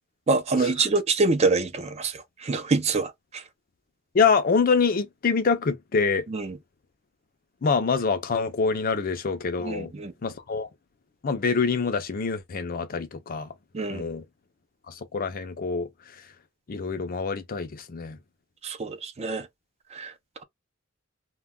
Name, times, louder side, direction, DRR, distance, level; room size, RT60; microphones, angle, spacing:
voice 1, 0.3-3.4 6.3-6.6 9.6-10.1 13.7-14.0 18.6-19.5 19.9-20.1, right 3 dB, 30° right, 0.4 m, -26 dB
voice 2, 4.1-6.3 7.6-9.9 10.2-10.7 11.2-13.5 13.9-14.2 14.9-15.9 16.7-18.2, left 5 dB, 45° left, 0.5 m, -25 dB
2.2 x 2.2 x 3.5 m
head